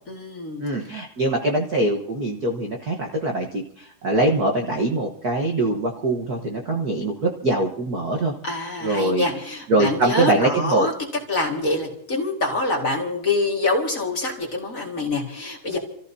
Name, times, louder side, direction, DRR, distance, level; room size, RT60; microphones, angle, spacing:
voice 1, 0.1-0.6 8.4-10.9 11.3-15.8, left 2 dB, 30° left, 0 dB, 1.9 m, -25 dB
voice 2, 0.6-8.3 8.8-9.4 9.7-10.9, right 2 dB, 75° right, 1 dB, 0.8 m, -23 dB
29.0 x 14.5 x 2.7 m, 0.67 s
omnidirectional pair, 3.7 m